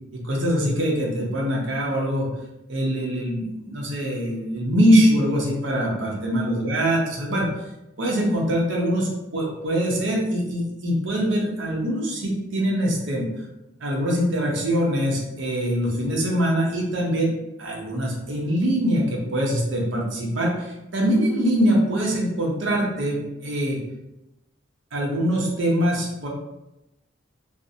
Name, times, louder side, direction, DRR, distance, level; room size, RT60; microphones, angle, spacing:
voice 1, 0.1-2.3 2.7-7.5 8.0-13.3 13.8-23.8 24.9-26.3, equal, 70° right, -2 dB, 0.6 m, -23 dB
2.5 x 2.0 x 2.6 m, 0.93 s
head